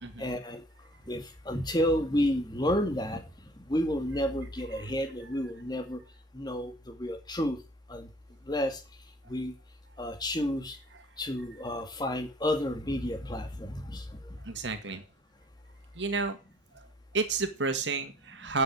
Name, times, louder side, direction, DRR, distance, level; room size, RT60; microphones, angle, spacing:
voice 1, 0.2-0.6 1.1-3.2 3.7-6.0 6.3-7.6 7.9-8.1 8.5-8.8 9.3-9.5 10.0-10.8 11.2-14.3, equal, 20° left, 6 dB, 2.2 m, -31 dB
voice 2, 14.4-15.0 15.9-16.4 16.7-16.9 17.1-18.6, right 3 dB, 70° right, 8 dB, 2.1 m, -31 dB
11.5 x 7.8 x 8.8 m, 0.31 s
head